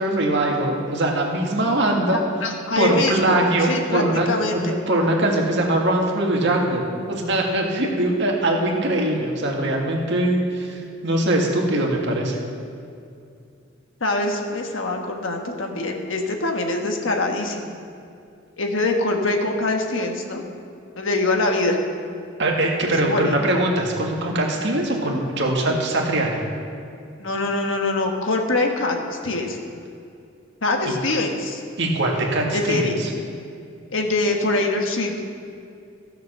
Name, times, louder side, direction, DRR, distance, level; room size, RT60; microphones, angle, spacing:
voice 1, 0.0-2.2 2.8-12.4 22.4-26.4 30.8-30.9 31.8-33.1, right 1 dB, 55° right, 0 dB, 1.8 m, -22 dB
voice 2, 2.4-4.7 14.0-17.7 18.6-20.4 21.0-21.8 23.0-23.5 27.2-29.6 30.6-31.6 32.5-33.1 33.9-35.1, left 2 dB, 65° left, 3 dB, 1.3 m, -24 dB
14.5 x 6.8 x 6.6 m, 2.4 s
head